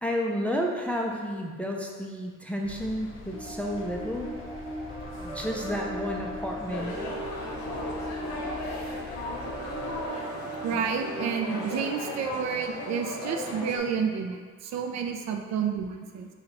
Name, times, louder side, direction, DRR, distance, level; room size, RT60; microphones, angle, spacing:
voice 1, 0.0-4.3 5.2-6.9, equal, 5° left, 0 dB, 0.3 m, -31 dB
sound 1, 2.6-10.1, left 3 dB, 45° left, 0.6 m, -45 dB
sound 2, 3.3-12.6, right 1 dB, 15° right, 0.9 m, -38 dB
sound 3, 6.7-13.8, left 1 dB, 65° left, 0.9 m, -36 dB
voice 2, 10.6-16.3, right 6 dB, 60° right, 4 dB, 0.5 m, -30 dB
2.8 x 2.8 x 4.4 m, 1.5 s
cardioid pair, 90°, 30 cm